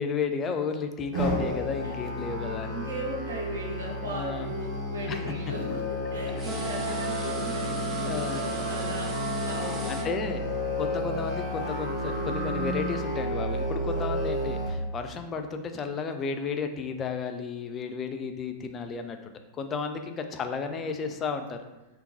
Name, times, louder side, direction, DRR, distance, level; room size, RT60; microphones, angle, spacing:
voice 1, 0.0-2.7 4.0-4.5 5.1-5.2 6.9-7.0 8.0-8.5 9.9-10.4 10.8-21.6, left 5 dB, 25° left, 6 dB, 0.3 m, -33 dB
Musical instrument, 1.1-14.7, left 1 dB, 40° right, 1.3 m, -32 dB
voice 2, 2.6-10.3, right 1 dB, 70° right, -1 dB, 0.7 m, -37 dB
sound 1, 6.4-10.1, right 4 dB, 25° right, 0.5 m, -34 dB
3.6 x 2.5 x 2.6 m, 1.1 s
figure-of-eight pair, 90°, 0 cm